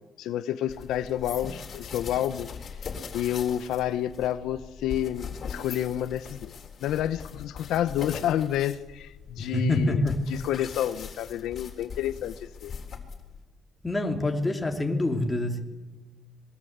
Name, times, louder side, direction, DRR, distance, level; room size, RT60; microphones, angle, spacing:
voice 1, 0.0-2.5 3.1-12.7, left 11 dB, 80° left, 11 dB, 1.0 m, -29 dB
sound 1, 0.7-13.4, left 6 dB, 40° left, 4.0 m, -41 dB
voice 2, 9.4-10.2 13.8-15.6, left 2 dB, 10° left, 2 dB, 3.2 m, -26 dB
26.0 x 21.5 x 8.2 m, 1.2 s
cardioid pair, 145°, 0 cm